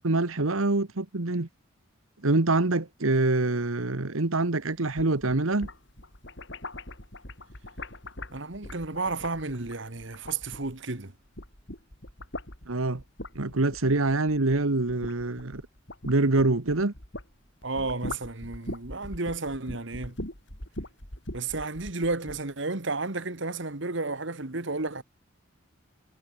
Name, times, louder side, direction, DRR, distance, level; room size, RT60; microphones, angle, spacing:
voice 1, 0.0-1.5 2.2-5.7 12.7-13.0 13.3-15.6 16.0-16.9, right 2 dB, 85° right, 1.4 m, -25 dB
sound 1, 4.7-11.0 11.3-17.3 17.6-22.4, left 1 dB, 60° left, 6.8 m, -41 dB
voice 2, 8.3-11.1 17.6-20.2 21.3-25.0, right 3 dB, 60° right, 1.7 m, -32 dB
head